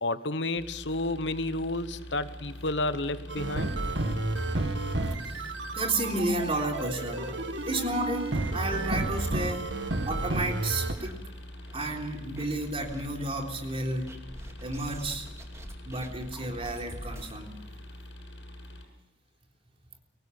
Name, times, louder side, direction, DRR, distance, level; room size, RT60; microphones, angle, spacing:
voice 1, 0.0-3.7, left 2 dB, 70° left, 12 dB, 1.1 m, -31 dB
sound 1, 0.6-18.9, left 1 dB, 85° left, 7.1 m, -44 dB
sound 2, 3.3-10.9, right 2 dB, 80° right, 2.0 m, -31 dB
voice 2, 5.2-7.3 7.7-9.7 10.1-11.2 11.7-14.1 14.6-15.3 15.9-17.5, right 2 dB, 30° right, 2 dB, 3.7 m, -32 dB
sound 3, 7.1-8.0 8.4-8.5 8.8-8.9 9.5-10.4 10.9-12.0 12.3-13.0 14.1-17.4, equal, 15° right, 2.6 m, -47 dB
24.5 x 19.0 x 7.1 m, 0.94 s
head